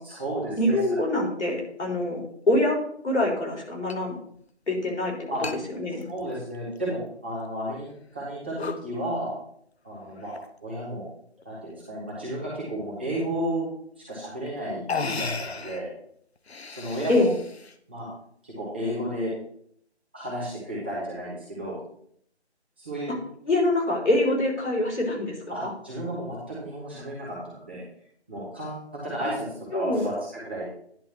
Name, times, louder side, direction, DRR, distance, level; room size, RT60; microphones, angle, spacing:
voice 1, 0.0-0.8 5.3-5.4 6.0-7.9 8.1-9.3 9.8-10.3 10.6-11.0 11.4-13.7 14.0-15.9 16.7-17.2 17.9-18.1 18.4-19.3 20.1-21.8 22.8-23.1 25.5-27.8 28.3-30.6, right 1 dB, 10° right, -10 dB, 1.3 m, -32 dB
voice 2, 0.6-2.8 3.0-4.2 4.7-5.1 5.8-6.0 17.1-17.3 23.5-25.7 29.7-30.1, left 1 dB, 80° left, -1 dB, 4.0 m, -24 dB
sound 1, 2.2-2.3 3.9-4.0 4.4-4.5 5.4-5.6 6.0-6.8 7.3-7.4 8.0-8.2 8.6-8.9 10.1-10.6 11.4-11.8 13.7-13.8 14.5-14.6 14.9-15.9 16.4-17.8, left 4 dB, 65° left, 0.8 m, -35 dB
10.5 x 4.0 x 6.2 m, 0.66 s
figure-of-eight pair, 175°, 34 cm